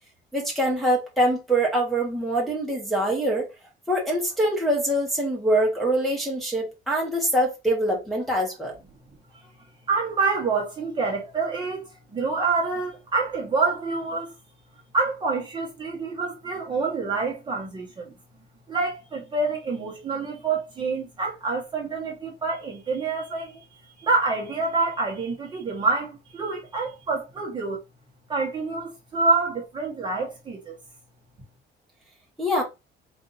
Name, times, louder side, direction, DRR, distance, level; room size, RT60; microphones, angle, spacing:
voice 1, 0.3-3.5 3.9-8.7 32.4-32.6, right 1 dB, ahead, 1.1 m, -24 dB
voice 2, 9.9-14.3 14.9-18.1 18.7-27.8 28.3-30.8, right 4 dB, 25° right, 1.0 m, -27 dB
3.9 x 2.6 x 3.9 m
cardioid pair, 175°, 19 cm